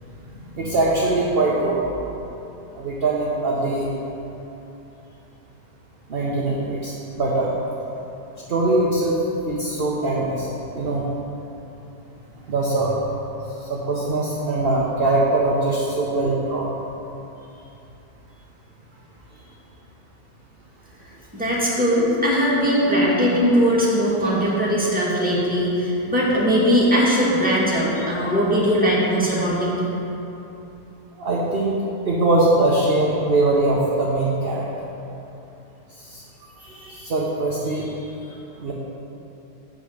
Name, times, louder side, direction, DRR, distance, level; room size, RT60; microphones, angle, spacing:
voice 1, 0.5-1.8 2.7-3.9 6.1-7.5 8.5-9.2 9.4-10.5 10.7-11.1 12.5-13.0 13.7-16.7 31.2-31.8 32.0-34.7 36.1-36.2 36.6-37.9 38.6-38.7, right 2 dB, 45° right, -4 dB, 0.8 m, -22 dB
voice 2, 21.3-29.7, equal, 5° right, -7 dB, 1.5 m, -20 dB
7.7 x 5.5 x 6.4 m, 2.9 s
omnidirectional pair, 1.8 m